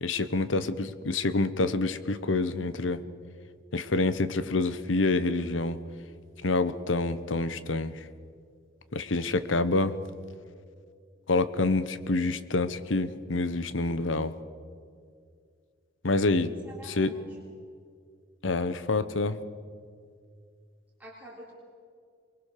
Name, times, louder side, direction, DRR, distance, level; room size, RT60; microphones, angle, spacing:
voice 1, 0.0-3.0 3.7-5.8 6.4-7.9 8.9-9.9 11.3-14.3 16.0-16.5 16.9-17.1 18.4-19.4, left 3 dB, 80° left, 14 dB, 1.0 m, -27 dB
voice 2, 16.6-17.4 21.0-21.5, right 1 dB, 10° right, -5 dB, 3.4 m, -47 dB
23.5 x 22.0 x 6.7 m, 2.2 s
head